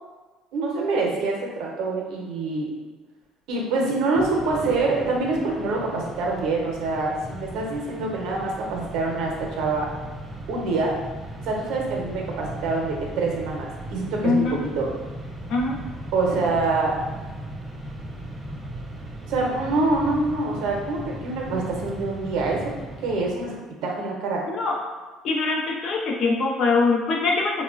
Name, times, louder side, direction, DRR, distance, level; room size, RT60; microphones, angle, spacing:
voice 1, 0.5-2.7 3.5-9.9 10.5-10.9 11.5-14.4 14.8-14.9 16.1-16.9 19.3-22.6 23.0-23.5 23.8-24.4, right 3 dB, 75° right, -1 dB, 0.6 m, -25 dB
Mechanisms, 4.1-23.6, right 1 dB, 20° right, 0.4 m, -37 dB
voice 2, 14.2-14.6 15.5-15.8 24.5-24.8 25.2-27.6, left 3 dB, 55° left, -1 dB, 0.5 m, -23 dB
3.0 x 2.1 x 2.4 m, 1.3 s
cardioid pair, 120°, 0 cm